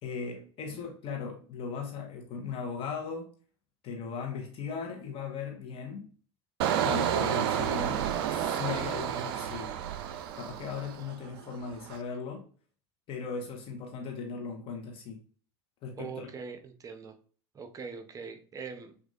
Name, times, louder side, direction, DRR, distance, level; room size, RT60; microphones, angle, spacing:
voice 1, 0.0-3.3 3.8-6.1 6.8-9.8 10.1-12.4 13.1-15.2 15.8-16.3, left 5 dB, 40° left, 1.0 m, -38 dB
Engine, 6.6-11.3 11.6-12.0, right 9 dB, 55° right, 0.5 m, -30 dB
voice 2, 16.0-17.1 17.5-19.0, right 5 dB, 25° right, 0.7 m, -42 dB
6.0 x 2.6 x 2.5 m
figure-of-eight pair, 70°, 14 cm